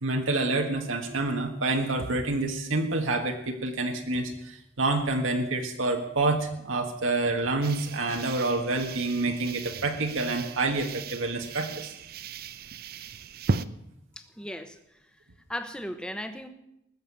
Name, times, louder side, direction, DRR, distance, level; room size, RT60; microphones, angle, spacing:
voice 1, 0.0-11.9, right 2 dB, 85° right, 3 dB, 1.5 m, -28 dB
sound 1, 7.6-13.7, right 4 dB, 50° right, 0.6 m, -36 dB
voice 2, 14.2-14.8 15.5-16.5, left 1 dB, 5° left, 8 dB, 1.0 m, -36 dB
20.0 x 7.2 x 8.5 m, 0.83 s
head